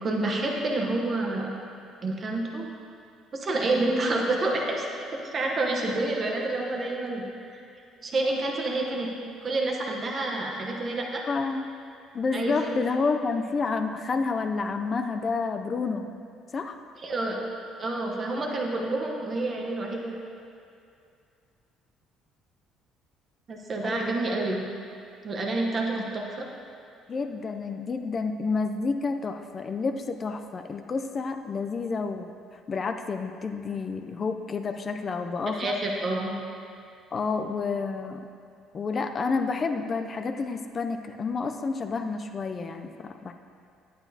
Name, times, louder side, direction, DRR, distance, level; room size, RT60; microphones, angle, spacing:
voice 1, 0.0-1.5 2.0-2.7 3.3-4.8 5.2-7.6 8.0-9.1 9.4-11.2 12.3-12.7 17.0-20.2 23.5-24.6 25.2-26.4 35.5-36.3, right 2 dB, 30° right, 0 dB, 0.9 m, -28 dB
voice 2, 11.3-11.7 12.1-16.1 16.5-16.8 23.8-24.1 26.0-26.1 27.1-32.3 32.7-35.8 37.1-38.2 38.7-43.3, left 4 dB, 25° left, 6 dB, 0.4 m, -29 dB
11.0 x 9.0 x 2.7 m, 2.4 s
cardioid pair, 160°, 0 cm